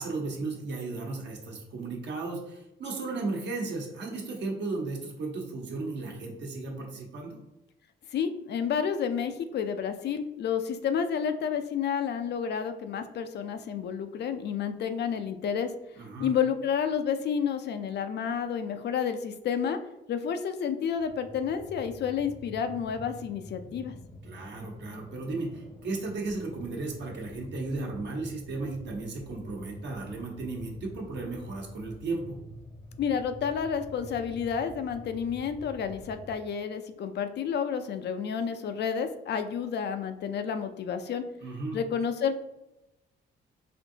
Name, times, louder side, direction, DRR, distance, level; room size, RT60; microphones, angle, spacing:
voice 1, 0.0-7.4 16.0-16.3 24.2-32.4 41.4-41.8, right 3 dB, 60° right, 0 dB, 1.1 m, -35 dB
voice 2, 8.1-15.7 16.2-19.8 20.1-23.9 33.0-41.2 41.7-42.4, left 7 dB, 60° left, 8 dB, 0.4 m, -30 dB
sound 1, 21.0-36.4, left 1 dB, 20° left, 0.7 m, -47 dB
4.3 x 2.7 x 2.7 m, 0.90 s
cardioid pair, 90°, 20 cm